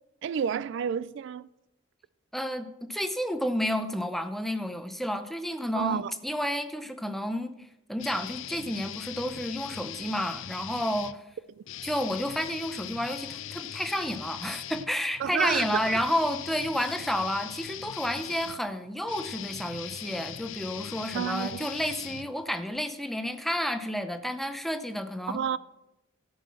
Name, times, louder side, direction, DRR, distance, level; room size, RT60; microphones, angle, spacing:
voice 1, 0.2-1.5 5.7-6.1 15.2-15.7 21.1-21.7 25.3-25.6, right 8 dB, 60° right, 0.3 m, -30 dB
voice 2, 2.3-7.6 7.9-11.2 11.8-25.4, equal, ahead, 0.6 m, -31 dB
sound 1, 8.0-11.2 11.6-22.8, left 11 dB, 70° left, 0.5 m, -40 dB
13.0 x 5.6 x 7.4 m
head